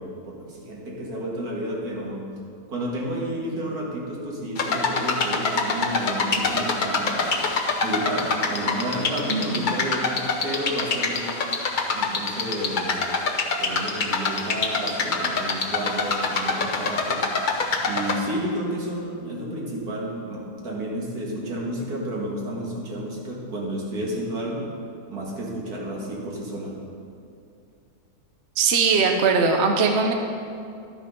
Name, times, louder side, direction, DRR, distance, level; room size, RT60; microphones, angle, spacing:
voice 1, 0.0-2.2 2.7-7.2 7.8-11.3 11.9-13.0 13.6-17.3 17.8-24.6 25.1-26.7, right 1 dB, 75° right, -3 dB, 2.3 m, -31 dB
sound 1, 4.6-18.2, left 4 dB, 40° left, 0.7 m, -25 dB
voice 2, 9.3-9.7 28.6-30.1, right 4 dB, 55° right, 3 dB, 0.9 m, -20 dB
12.0 x 6.1 x 5.3 m, 2.4 s
omnidirectional pair, 1.7 m